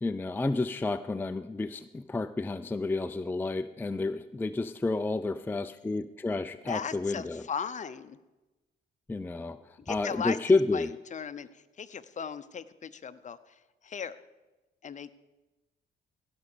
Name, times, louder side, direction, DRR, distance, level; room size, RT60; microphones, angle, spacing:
voice 1, 0.0-7.4 9.1-9.6 9.9-10.9, left 3 dB, 10° left, 10 dB, 0.4 m, -30 dB
voice 2, 6.7-8.2 9.8-10.4 10.7-13.4 13.8-14.2 14.8-15.1, left 6 dB, 40° left, 13 dB, 0.7 m, -37 dB
16.5 x 6.1 x 6.7 m, 1.1 s
cardioid pair, 90°, 20 cm